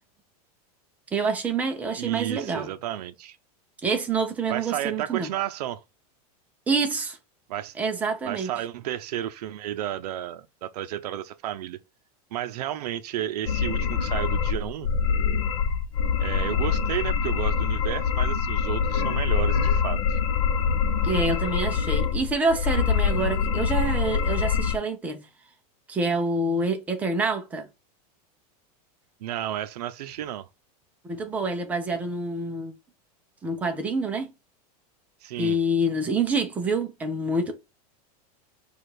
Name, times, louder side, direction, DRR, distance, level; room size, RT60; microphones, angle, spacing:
voice 1, 1.1-2.7 3.8-5.3 6.7-7.2 7.8-8.5 21.0-25.3 25.9-27.7 31.0-32.7 33.4-34.3 35.4-37.5, right 2 dB, 10° right, 0.4 m, -27 dB
voice 2, 2.0-3.4 4.5-5.8 7.5-7.8 8.2-11.8 12.3-14.9 16.2-20.2 29.2-30.5 35.2-35.6, right 12 dB, 90° right, 0.5 m, -32 dB
sound 1, 13.5-24.8, left 6 dB, 65° left, 0.7 m, -24 dB
4.9 x 2.4 x 4.3 m
supercardioid pair, 175°, 20 cm